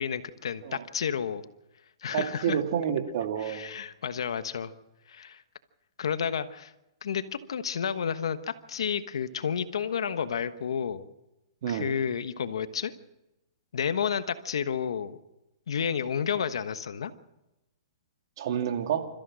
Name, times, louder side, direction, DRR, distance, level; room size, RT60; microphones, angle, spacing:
voice 1, 0.0-1.4 2.0-2.6 3.4-4.7 5.1-5.4 6.0-6.7 7.0-11.0 11.7-12.9 13.7-15.2 15.7-17.1, left 7 dB, 80° left, 12 dB, 1.2 m, -31 dB
voice 2, 2.1-3.7 11.6-11.9 18.4-19.1, right 9 dB, 60° right, 5 dB, 2.4 m, -29 dB
28.5 x 14.5 x 6.3 m, 0.96 s
hypercardioid pair, 140°, 3 cm